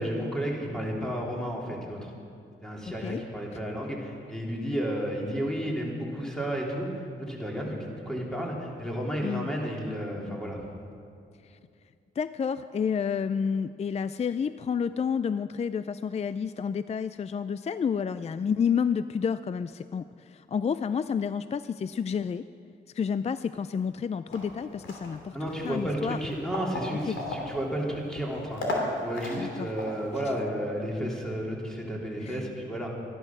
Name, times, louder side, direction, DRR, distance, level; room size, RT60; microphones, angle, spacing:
voice 1, 0.0-2.1 2.6-10.6 25.3-32.9, equal, 5° left, -2 dB, 3.4 m, -32 dB
voice 2, 2.9-3.2 3.5-3.6 9.2-9.5 11.4-11.6 12.2-22.5 22.9-25.4 25.6-26.2 27.1-27.2 29.4-29.7 32.2-32.4, left 6 dB, 35° left, 13 dB, 0.4 m, -30 dB
sound 1, 24.3-30.4, left 2 dB, 85° left, 2.7 m, -37 dB
14.0 x 11.5 x 6.1 m, 2.4 s
cardioid pair, 65°, 19 cm